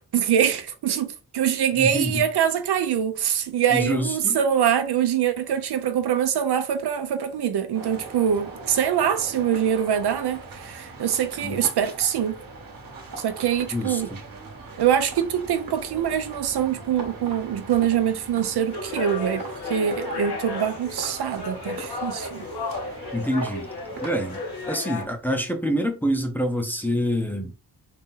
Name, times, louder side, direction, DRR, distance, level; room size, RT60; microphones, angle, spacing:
voice 1, 0.1-12.4 13.2-14.1 14.8-22.5, right 9 dB, 75° right, 0.7 m, -24 dB
voice 2, 1.8-2.2 3.7-4.4 11.4-11.6 13.7-14.2 23.1-23.7 24.0-27.5, equal, 5° left, 0.7 m, -26 dB
sound 1, 7.7-24.7, right 3 dB, 60° right, 1.2 m, -40 dB
sound 2, 18.7-25.0, left 2 dB, 80° left, 1.8 m, -33 dB
4.2 x 2.8 x 3.7 m
wide cardioid pair, 160°, 39 cm